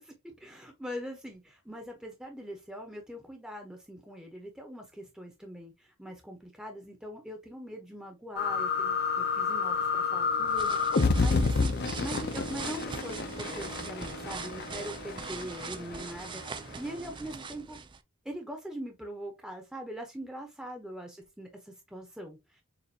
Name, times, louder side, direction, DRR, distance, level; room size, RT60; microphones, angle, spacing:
voice 1, 0.0-17.8 18.2-22.6, equal, 5° right, 0.7 m, -42 dB
sound 1, 8.4-16.7, left 4 dB, 50° left, 0.5 m, -30 dB
sound 2, 10.2-18.0, right 5 dB, 20° right, 0.3 m, -41 dB
6.7 x 2.5 x 2.7 m
head